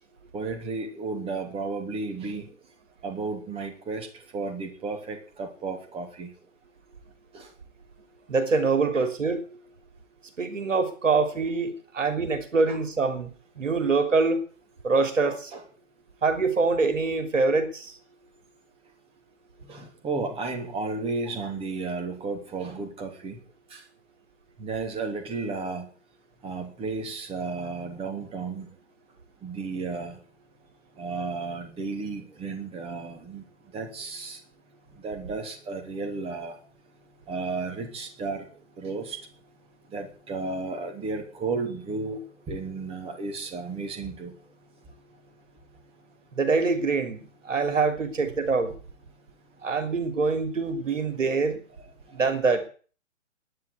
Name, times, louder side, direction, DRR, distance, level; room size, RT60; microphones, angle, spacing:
voice 1, 0.3-2.5 3.0-6.3 7.3-7.5 8.9-9.0 12.7-12.8 15.2-15.6 19.6-23.4 23.7-23.8 24.6-25.9 26.4-28.7 29.4-30.2 31.0-33.4 33.7-34.4 34.9-36.6 37.3-38.5 38.8-39.3 39.9-44.3 52.1-52.2, right 3 dB, 15° right, 3.1 m, -33 dB
voice 2, 8.3-9.6 10.4-13.3 13.6-14.4 14.8-15.5 16.2-17.9 46.3-48.7 49.6-51.6 52.1-52.7, right 4 dB, 75° right, 3.4 m, -25 dB
11.5 x 9.9 x 9.5 m
figure-of-eight pair, 130°, 38 cm